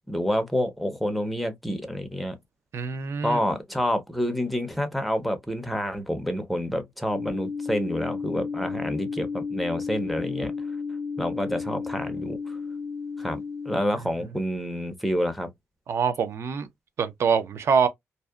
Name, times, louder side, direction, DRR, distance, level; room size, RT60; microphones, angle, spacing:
voice 1, 0.1-2.4 3.2-10.5 11.2-12.6 13.2-13.4 13.7-15.5, equal, ahead, 0.5 m, -28 dB
voice 2, 2.7-3.4 15.9-16.7 17.0-17.9, right 6 dB, 55° right, 0.5 m, -24 dB
sound 1, 7.1-13.8, left 5 dB, 55° left, 0.5 m, -33 dB
2.7 x 2.1 x 2.2 m
cardioid pair, 130°, 5 cm